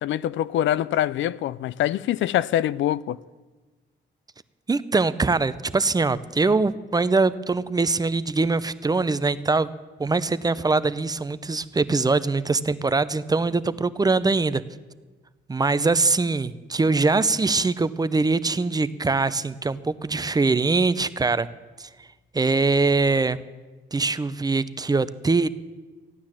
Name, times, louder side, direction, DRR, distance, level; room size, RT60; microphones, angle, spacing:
voice 1, 0.0-3.2, left 12 dB, 70° left, 0.4 m, -24 dB
voice 2, 4.7-9.7 10.0-14.6 15.5-21.5 21.8-22.1 22.3-23.4 23.9-25.5, right 3 dB, 20° right, 0.6 m, -22 dB
14.5 x 9.6 x 7.4 m
cardioid pair, 90°, 20 cm